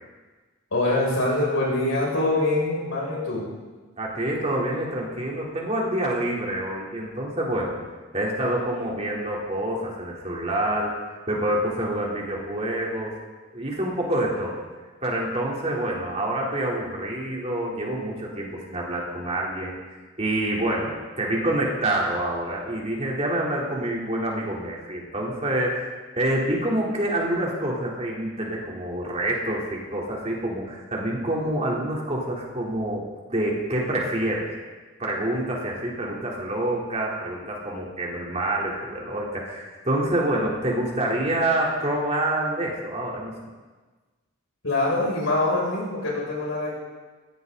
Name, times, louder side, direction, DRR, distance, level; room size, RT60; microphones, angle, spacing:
voice 1, 0.7-3.5 44.6-46.7, left 2 dB, 80° left, -4 dB, 7.5 m, -24 dB
voice 2, 4.0-7.8 8.1-10.9 11.3-13.1 13.5-14.6 15.0-19.8 20.2-25.9 26.2-34.5 35.0-43.3, right 1 dB, 35° right, -3 dB, 3.8 m, -27 dB
21.0 x 17.0 x 4.1 m, 1.3 s
head